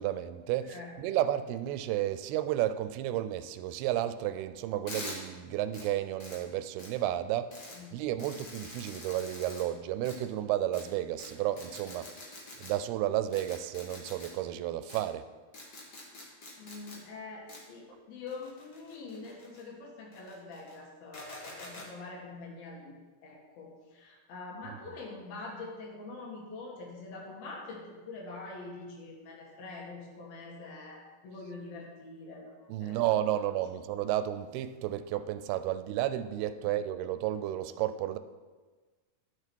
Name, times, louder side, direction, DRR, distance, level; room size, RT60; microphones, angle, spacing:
voice 1, 0.0-7.5 7.9-12.1 12.6-15.2 24.7-25.0 32.7-38.2, right 12 dB, 90° right, 11 dB, 2.5 m, -32 dB
sound 1, 4.9-5.2 5.7-5.8 6.2-6.4 6.8-6.9 7.5-7.8 8.2-9.6 10.0-10.2 10.7-10.8 11.2-11.3 11.6-12.7 13.3-14.3 14.9-15.0 15.5-17.0 17.5-17.6 18.3-19.6 20.1-20.8 21.1-21.9, left 2 dB, 55° left, 1.1 m, -45 dB
voice 2, 16.6-22.9 23.2-32.5 32.8-33.0 33.4-33.5 36.6-36.7, left 3 dB, 70° left, -1 dB, 3.4 m, -45 dB
11.0 x 6.9 x 4.6 m, 1.4 s
omnidirectional pair, 4.4 m